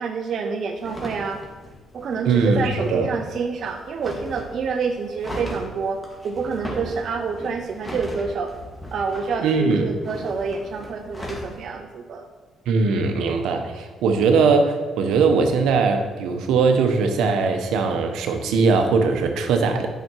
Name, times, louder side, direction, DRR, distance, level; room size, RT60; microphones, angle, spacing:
voice 1, 0.0-1.4 1.9-6.0 6.2-8.5 8.9-12.3, right 5 dB, 60° right, 4 dB, 0.7 m, -27 dB
sound 1, 0.8-11.6, equal, 15° left, 2.3 m, -38 dB
voice 2, 2.2-3.1 9.4-9.9 12.7-19.9, right 4 dB, 85° right, 5 dB, 1.0 m, -20 dB
9.2 x 5.9 x 4.6 m, 1.4 s
cardioid pair, 90°, 0 cm